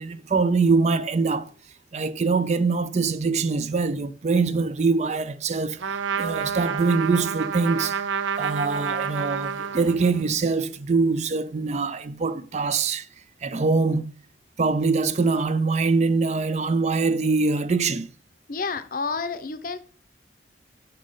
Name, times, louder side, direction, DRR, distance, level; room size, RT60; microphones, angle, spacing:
voice 1, 0.0-1.5 1.9-8.0 8.4-13.1 13.4-14.1 14.6-18.1, right 4 dB, 35° right, 0.4 m, -23 dB
Trumpet, 5.8-10.4, right 6 dB, 90° right, 0.5 m, -29 dB
voice 2, 18.5-19.8, left 4 dB, 45° left, 0.7 m, -29 dB
6.3 x 5.7 x 5.1 m
head